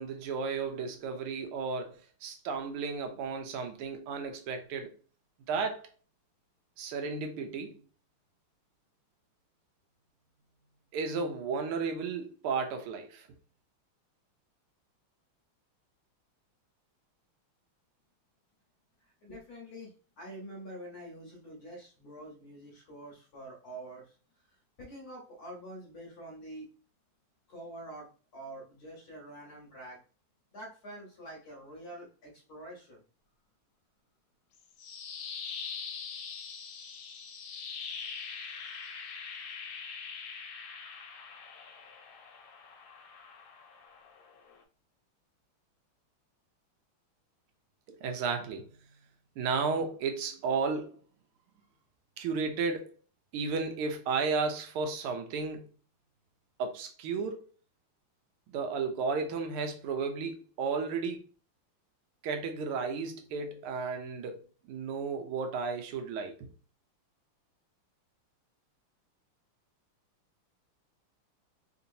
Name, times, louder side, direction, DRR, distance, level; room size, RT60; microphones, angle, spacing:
voice 1, 0.0-4.9 5.5-5.9 6.8-7.8 10.9-13.3 48.0-48.7 49.4-51.0 52.2-52.9 53.3-55.7 56.6-57.4 58.5-61.2 62.2-66.5, right 5 dB, 85° right, 1.5 m, -33 dB
voice 2, 19.2-24.1 24.8-26.7 27.5-30.0 30.5-33.0, right 1 dB, 50° left, 1.3 m, -46 dB
sound 1, 34.5-44.6, left 6 dB, 80° left, 1.4 m, -43 dB
3.8 x 2.8 x 2.6 m
omnidirectional pair, 2.4 m